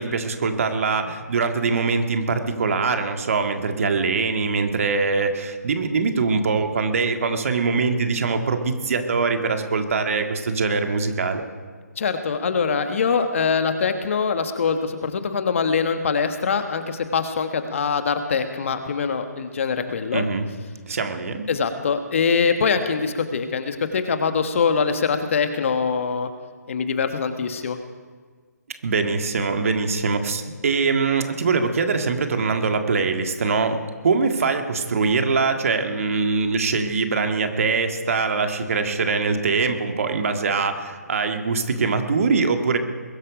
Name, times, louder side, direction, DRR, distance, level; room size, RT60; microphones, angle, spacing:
voice 1, 0.0-11.4 20.1-20.5 20.9-21.5 28.8-33.8 34.0-42.8, right 4 dB, 55° right, 6 dB, 1.8 m, -23 dB
voice 2, 12.0-20.3 21.5-26.3 26.7-27.8, left 5 dB, 50° left, 8 dB, 1.4 m, -23 dB
21.0 x 11.5 x 5.1 m, 1.5 s
figure-of-eight pair, 145°, 9 cm